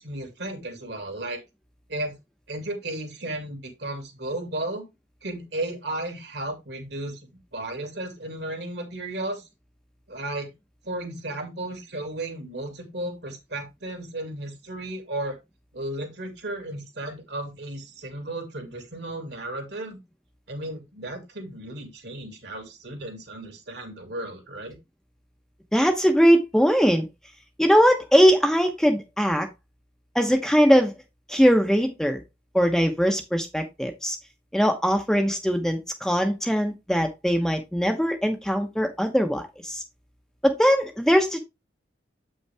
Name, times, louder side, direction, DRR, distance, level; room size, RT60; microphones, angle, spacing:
voice 1, 0.0-1.4 1.9-2.2 2.5-4.9 5.2-7.2 7.5-9.5 10.1-10.5 10.8-15.4 15.7-20.0 20.5-24.8, right 1 dB, 60° right, 5 dB, 2.3 m, -34 dB
voice 2, 25.7-27.0 27.6-29.5 30.1-30.9 31.3-32.2 32.5-34.2 34.5-39.8 40.4-41.4, equal, 5° left, 4 dB, 0.9 m, -21 dB
8.0 x 5.5 x 3.4 m, 0.22 s
head